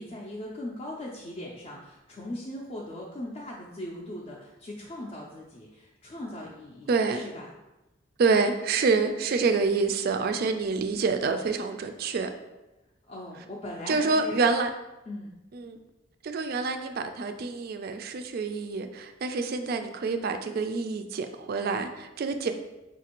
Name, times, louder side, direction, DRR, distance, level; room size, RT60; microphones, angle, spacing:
voice 1, 0.0-7.5 13.1-14.4 15.1-15.4, left 1 dB, 30° left, -4 dB, 0.4 m, -39 dB
voice 2, 6.9-7.2 8.2-12.3 13.9-14.7 15.5-15.8 16.2-22.5, right 4 dB, 50° right, 7 dB, 0.3 m, -27 dB
5.0 x 2.4 x 2.9 m, 1.0 s
head